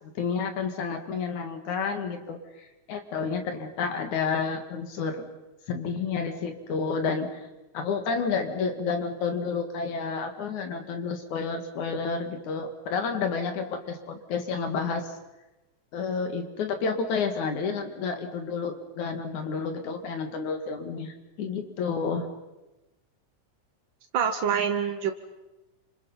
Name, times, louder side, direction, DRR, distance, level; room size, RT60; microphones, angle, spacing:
voice 1, 0.0-5.3 5.7-7.3 7.7-15.1 15.9-22.3, left 5 dB, 75° left, 6 dB, 3.3 m, -30 dB
voice 2, 24.1-25.1, right 7 dB, 60° right, 6 dB, 1.3 m, -25 dB
27.5 x 26.5 x 5.6 m, 1.0 s
omnidirectional pair, 3.4 m